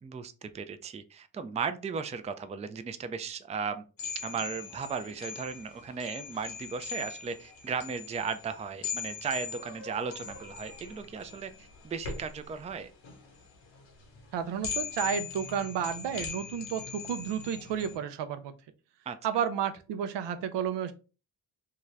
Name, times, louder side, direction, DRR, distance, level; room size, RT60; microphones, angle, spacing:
voice 1, 0.0-3.8 4.2-12.9 19.1-19.2, right 5 dB, 15° right, 10 dB, 0.3 m, -36 dB
sound 1, 4.0-18.0, left 6 dB, 85° left, 1.1 m, -41 dB
voice 2, 14.3-18.5 19.2-20.9, right 8 dB, 75° right, 11 dB, 0.5 m, -32 dB
2.7 x 2.3 x 3.2 m, 0.33 s
supercardioid pair, 50°, 43 cm